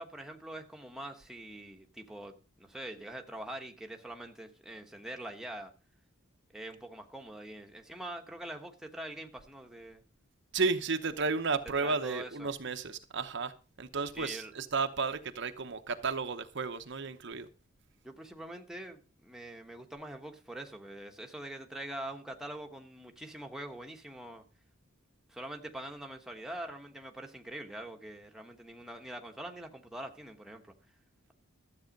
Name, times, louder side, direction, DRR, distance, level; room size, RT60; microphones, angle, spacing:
voice 1, 0.0-5.7 6.5-10.0 11.8-12.5 14.1-14.5 18.0-24.4 25.3-30.7, right 1 dB, ahead, 3 dB, 1.2 m, -44 dB
voice 2, 10.5-13.5 13.8-17.5, right 4 dB, 55° right, 8 dB, 0.8 m, -33 dB
13.0 x 8.0 x 5.2 m, 0.34 s
head